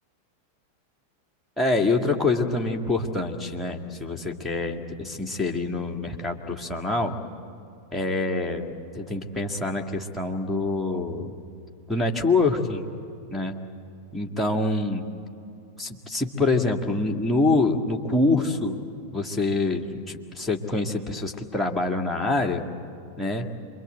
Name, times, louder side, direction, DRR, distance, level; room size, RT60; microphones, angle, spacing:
voice 1, 1.6-7.1 7.9-11.3 11.9-12.9 13.3-13.6 14.1-15.0 15.8-18.8 19.1-22.6 23.2-23.5, left 2 dB, 5° left, 0 dB, 2.2 m, -25 dB
27.0 x 23.0 x 8.0 m, 2.6 s
figure-of-eight pair, 90°, 0 cm